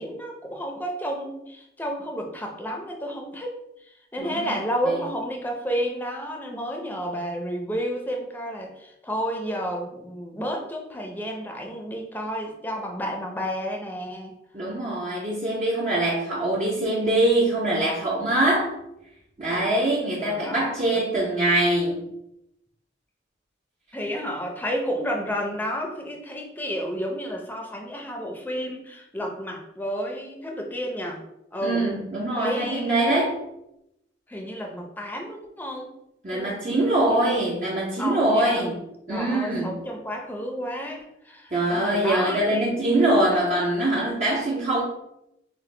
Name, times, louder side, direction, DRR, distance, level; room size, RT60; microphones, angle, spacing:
voice 1, 0.0-14.3 19.5-19.6 20.2-21.0 23.9-31.2 31.5-31.8 32.3-33.2 34.3-35.9 36.3-37.3 38.0-38.7 39.1-41.0 41.2-43.6, equal, 10° left, 1 dB, 0.6 m, -31 dB
voice 2, 4.2-4.6 4.9-5.0 14.5-18.7 19.4-22.0 31.6-33.4 36.2-38.8 39.1-39.7 41.5-44.8, right 1 dB, 40° right, -5 dB, 0.7 m, -23 dB
6.7 x 2.2 x 3.2 m, 0.84 s
head